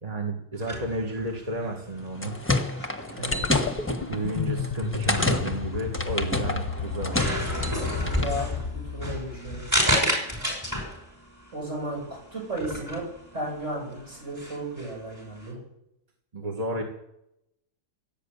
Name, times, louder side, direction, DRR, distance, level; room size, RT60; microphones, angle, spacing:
voice 1, 0.0-2.3 4.1-7.2 16.3-16.8, right 2 dB, 30° right, 1 dB, 1.9 m, -32 dB
sound 1, 0.5-15.5, equal, 15° right, 5.3 m, -32 dB
sound 2, 2.0-8.4, left 2 dB, 10° left, 1.3 m, -29 dB
voice 2, 3.1-3.6 8.0-8.5 8.7-9.7 11.5-13.0 13.3-15.6, right 1 dB, 65° right, -2 dB, 8.1 m, -34 dB
sound 3, 3.3-9.8, left 6 dB, 40° left, 1.0 m, -32 dB
16.5 x 8.9 x 8.3 m, 0.81 s
omnidirectional pair, 1.3 m